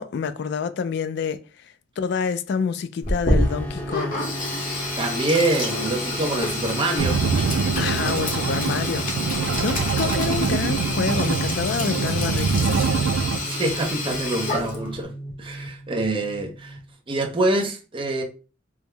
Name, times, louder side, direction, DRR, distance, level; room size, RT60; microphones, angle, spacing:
voice 1, 0.0-1.4 2.0-4.3 7.8-12.9 15.5-15.6, left 6 dB, 60° left, 0.3 m, -28 dB
Sink (filling or washing), 3.0-15.0, left 2 dB, 45° left, 0.8 m, -28 dB
sound 1, 3.4-16.9, equal, 10° left, 0.8 m, -34 dB
voice 2, 5.0-7.2 12.5-12.9 13.5-15.1 15.4-16.8 17.1-18.2, right 2 dB, 25° right, 0.6 m, -25 dB
sound 2, 7.0-13.4, right 5 dB, 85° right, 0.3 m, -24 dB
3.5 x 2.0 x 3.3 m
head